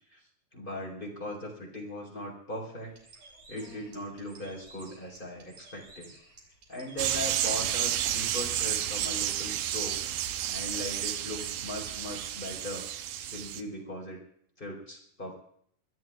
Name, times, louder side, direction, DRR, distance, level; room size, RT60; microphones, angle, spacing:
voice 1, 0.5-3.0 3.5-6.2 6.7-12.8 13.2-14.2 14.6-15.3, equal, 15° left, -2 dB, 3.9 m, -39 dB
Bird, 2.9-8.9, right 3 dB, 50° right, 4.5 m, -54 dB
sound 1, 3.6-4.1, left 3 dB, 55° left, 7.9 m, -54 dB
sound 2, 7.0-13.6, right 11 dB, 85° right, 2.7 m, -31 dB
24.0 x 13.0 x 3.5 m, 0.66 s
omnidirectional pair, 4.1 m